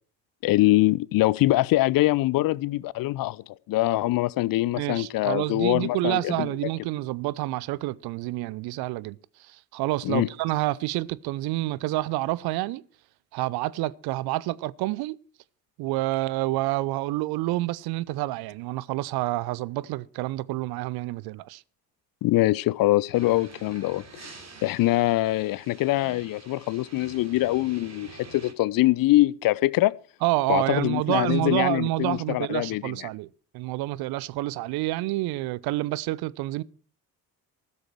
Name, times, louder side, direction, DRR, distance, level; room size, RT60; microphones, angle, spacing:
voice 1, 0.4-6.5 10.0-10.3 22.2-24.3 24.6-29.9 30.5-33.0, left 17 dB, 50° left, 0.6 m, -23 dB
voice 2, 4.8-12.8 13.3-15.2 15.8-21.6 30.2-33.3 33.5-36.6, right 18 dB, 55° right, 0.7 m, -28 dB
sound 1, 23.1-28.5, right 4 dB, 35° right, 3.4 m, -47 dB
15.0 x 13.0 x 4.7 m
figure-of-eight pair, 45°, 46 cm